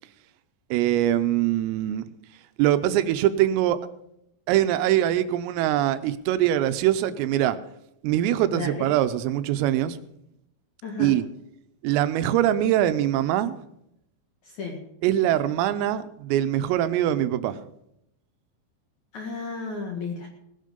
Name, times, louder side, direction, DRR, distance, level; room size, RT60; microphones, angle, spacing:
voice 1, 0.7-2.1 2.6-3.8 4.5-7.6 8.0-10.0 11.0-11.2 11.8-13.6 15.0-17.6, right 12 dB, 85° right, 12 dB, 3.5 m, -23 dB
voice 2, 8.5-8.9 10.8-11.2 14.4-14.8 19.1-20.3, left 4 dB, 55° left, 1 dB, 2.3 m, -33 dB
18.0 x 10.5 x 5.3 m, 0.79 s
omnidirectional pair, 5.9 m